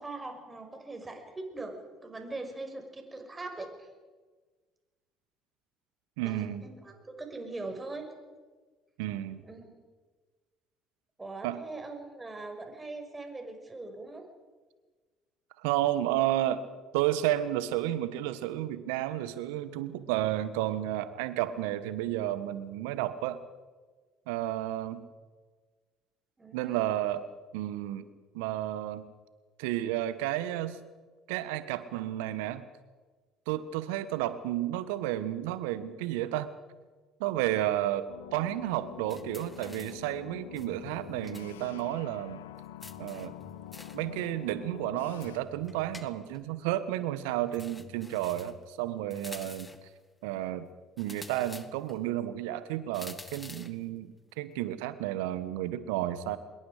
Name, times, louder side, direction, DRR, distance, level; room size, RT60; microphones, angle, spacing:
voice 1, 0.0-1.7 2.0-3.9 6.2-8.1 9.4-9.7 11.2-14.3 26.4-26.8, right 2 dB, 20° right, 4 dB, 5.9 m, -41 dB
voice 2, 6.2-6.6 9.0-9.4 11.4-11.6 15.6-16.6 16.9-23.4 24.3-25.0 26.5-27.2 27.5-28.1 28.3-29.0 29.6-30.8 31.3-32.6 33.5-36.5 37.2-42.4 43.0-43.3 43.9-49.7 50.2-50.7 51.0-56.4, right 13 dB, 70° right, 14 dB, 1.4 m, -32 dB
sound 1, 38.1-45.4, left 11 dB, 80° left, 0.9 m, -46 dB
sound 2, 39.1-40.1 40.6-41.5 41.8-41.9 42.8-44.1 45.2-46.5 47.5-48.6 49.1-49.9 51.0-52.0 52.9-53.8, left 3 dB, 20° left, 1.8 m, -48 dB
25.0 x 21.5 x 5.1 m, 1.4 s
hypercardioid pair, 55°, 0 cm